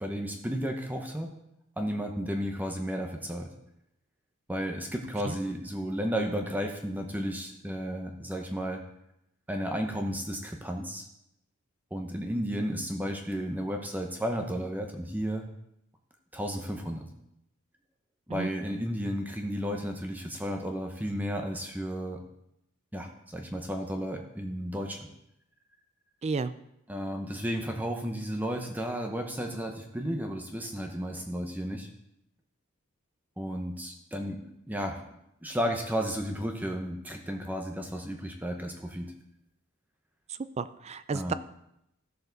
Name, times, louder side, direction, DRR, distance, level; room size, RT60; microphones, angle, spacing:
voice 1, 0.0-1.3 1.8-3.5 4.5-8.8 9.5-11.1 11.9-15.4 16.3-17.1 18.3-22.2 22.9-25.0 26.9-31.9 33.4-35.0 35.4-39.1 41.1-41.3, equal, 10° right, 3 dB, 0.8 m, -33 dB
voice 2, 26.2-26.5 40.6-41.3, right 4 dB, 30° right, 14 dB, 0.4 m, -31 dB
14.0 x 6.7 x 4.0 m, 0.82 s
head